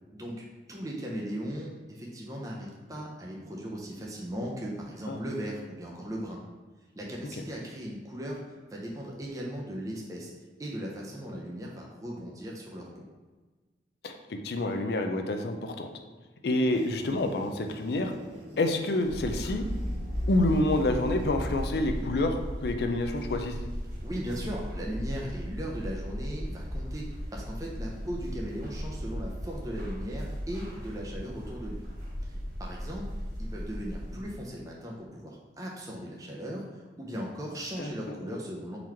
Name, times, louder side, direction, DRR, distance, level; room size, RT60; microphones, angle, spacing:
voice 1, 0.1-6.4 7.0-8.4 8.7-10.3 10.6-13.0 24.0-31.8 32.2-33.1 33.4-38.8, equal, 20° right, -2 dB, 0.5 m, -38 dB
voice 2, 14.0-15.9 16.4-18.1 18.6-19.6 20.3-23.6 37.8-37.9, left 1 dB, 60° left, 5 dB, 0.4 m, -28 dB
sound 1, 16.7-22.3, right 1 dB, 70° right, 0.8 m, -47 dB
sound 2, 19.0-34.2, equal, 45° right, 1.4 m, -36 dB
3.9 x 3.0 x 4.3 m, 1.3 s
head